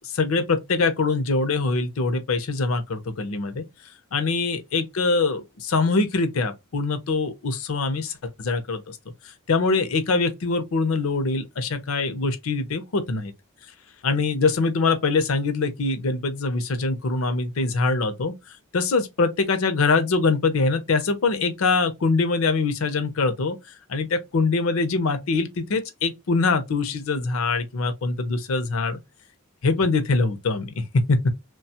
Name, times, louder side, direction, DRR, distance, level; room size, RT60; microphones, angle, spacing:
voice 1, 0.0-3.6 4.1-9.0 9.5-13.3 14.0-18.3 18.7-23.6 23.9-29.0 29.6-31.2, left 3 dB, 75° left, 0.6 m, -23 dB
2.9 x 2.2 x 2.8 m
head